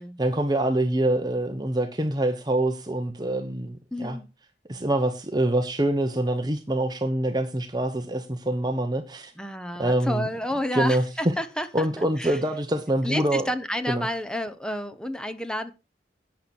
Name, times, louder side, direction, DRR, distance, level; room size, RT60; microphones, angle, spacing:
voice 1, 0.2-4.2 4.7-9.3 9.8-10.3 10.7-11.0 11.7-13.5 13.9-14.1, right 1 dB, 25° right, 1.0 m, -25 dB
voice 2, 3.9-4.3 9.4-11.9 12.2-12.4 13.0-15.7, equal, 5° left, 0.9 m, -30 dB
11.5 x 8.5 x 4.5 m
head